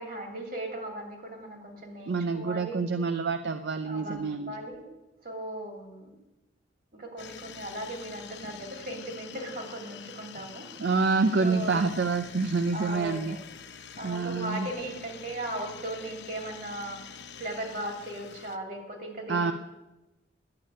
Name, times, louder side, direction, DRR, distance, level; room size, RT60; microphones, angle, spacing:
voice 1, 0.0-2.9 3.8-4.8 5.2-6.1 6.9-10.7 11.4-11.8 12.7-13.4 14.0-19.5, right 1 dB, 55° right, 1 dB, 2.9 m, -37 dB
voice 2, 2.1-4.6 10.8-13.4 14.0-14.7 19.3-19.5, right 4 dB, 75° right, 9 dB, 0.6 m, -27 dB
sound 1, 7.2-18.6, left 6 dB, 70° left, 0.8 m, -46 dB
11.5 x 7.5 x 9.8 m, 1.0 s
head